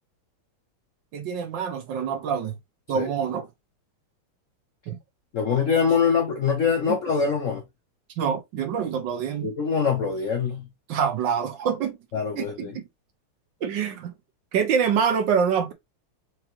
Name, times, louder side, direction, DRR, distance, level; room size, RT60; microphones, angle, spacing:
voice 1, 1.1-2.6 2.9-3.5 4.9-5.0 6.9-7.0 8.2-9.5 10.9-12.0 12.3-12.9 13.6-14.1 14.5-15.7, right 7 dB, 65° right, 1.3 m, -25 dB
voice 2, 5.3-7.6 9.4-10.7 12.1-12.7, left 6 dB, 65° left, 0.7 m, -24 dB
4.8 x 3.2 x 2.9 m
omnidirectional pair, 2.4 m